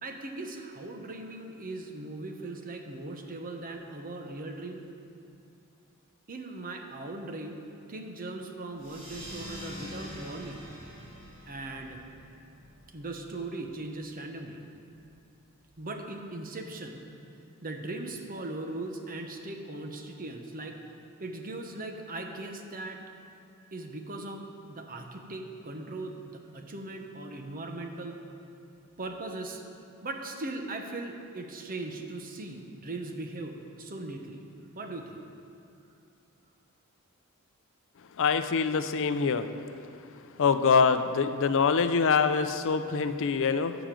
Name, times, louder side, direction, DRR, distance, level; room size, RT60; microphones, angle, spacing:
voice 1, 0.0-4.8 6.3-7.6 7.9-10.7 11.5-12.0 12.9-14.6 15.8-17.0 17.6-20.8 21.2-23.0 23.7-28.2 29.0-29.6 30.0-34.4 34.7-35.2, right 2 dB, 40° right, 4 dB, 0.9 m, -39 dB
sound 1, 8.8-13.9, equal, 25° right, 2.8 m, -45 dB
voice 2, 38.2-39.5 40.4-43.8, left 5 dB, 60° left, 10 dB, 0.5 m, -24 dB
12.5 x 5.1 x 7.6 m, 2.6 s
head